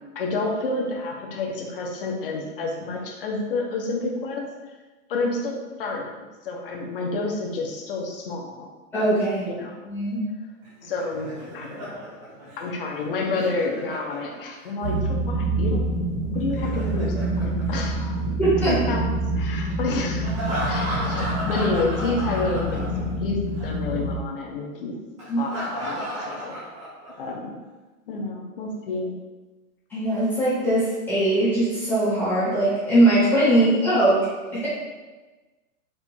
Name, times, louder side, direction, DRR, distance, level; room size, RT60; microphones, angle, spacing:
voice 1, 0.1-4.5 5.1-6.2 6.4-8.7 9.6-9.8 10.8-12.1 12.6-15.8 16.3-18.2 18.6-19.1 19.3-20.3 20.6-22.8 23.2-25.0 25.3-26.7 27.2-27.6 28.1-29.1 33.4-33.6, left 3 dB, 40° left, 1 dB, 0.7 m, -29 dB
voice 2, 8.9-9.4 9.8-10.2 18.4-18.7 25.3-25.4 29.9-34.2 34.5-34.7, right 1 dB, 5° left, -13 dB, 0.8 m, -21 dB
Laughter, 10.6-14.7 16.4-18.5 20.2-23.3 23.5-23.7 25.2-27.3, right 1 dB, 20° right, 0.8 m, -34 dB
sound 1, 14.8-24.1, right 1 dB, 45° right, 1.2 m, -26 dB
4.4 x 2.4 x 4.4 m, 1.2 s
hypercardioid pair, 175°, 42 cm